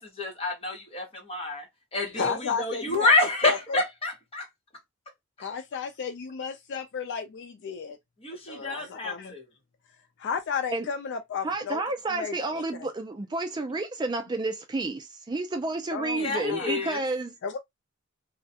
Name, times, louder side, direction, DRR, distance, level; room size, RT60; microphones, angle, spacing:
voice 1, 0.0-1.7 1.9-4.4 8.2-9.4 16.2-17.0, left 3 dB, 25° left, 1.0 m, -28 dB
voice 2, 2.2-3.1 3.4-3.8 5.4-8.0 8.5-9.3 10.2-11.8 12.1-12.9 15.9-16.8 17.4-17.6, left 6 dB, 55° left, 0.4 m, -33 dB
voice 3, 11.4-17.3, right 3 dB, 20° right, 0.3 m, -30 dB
2.3 x 2.1 x 2.7 m
head